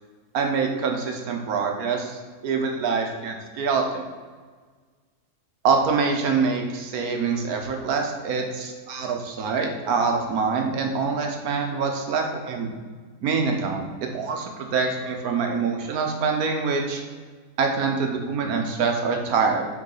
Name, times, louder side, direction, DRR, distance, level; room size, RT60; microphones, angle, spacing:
voice 1, 0.3-4.0 5.6-12.7 13.2-17.0 17.6-19.7, right 5 dB, 70° right, 3 dB, 1.3 m, -25 dB
6.7 x 3.7 x 3.9 m, 1.5 s
omnidirectional pair, 1.7 m